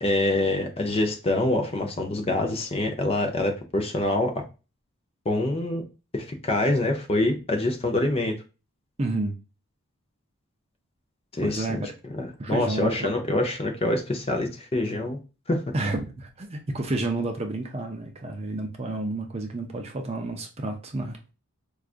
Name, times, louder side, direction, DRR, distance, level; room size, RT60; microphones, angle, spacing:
voice 1, 0.0-4.4 5.3-5.8 6.1-8.3 11.3-15.2 15.5-15.6, left 2 dB, 25° left, 0.5 m, -25 dB
voice 2, 9.0-9.4 11.4-11.8 12.4-13.1 15.7-21.2, right 2 dB, 30° right, 0.5 m, -30 dB
4.6 x 2.4 x 2.4 m
head